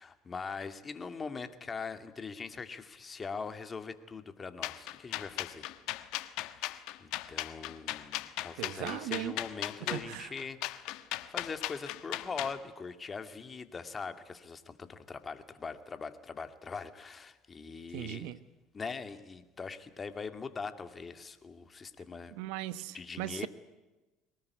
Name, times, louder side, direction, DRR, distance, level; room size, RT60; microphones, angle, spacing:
voice 1, 0.0-5.7 6.3-11.0 11.3-18.3 18.7-22.3 22.9-23.5, left 5 dB, 30° left, 9 dB, 2.3 m, -42 dB
sound 1, 4.6-12.6, left 16 dB, 70° left, 1.3 m, -37 dB
voice 2, 8.6-9.4 9.9-10.3 17.9-18.4 22.3-23.5, right 15 dB, 75° right, 14 dB, 1.2 m, -38 dB
23.0 x 19.5 x 9.6 m, 1.1 s
hypercardioid pair, 75°, 0 cm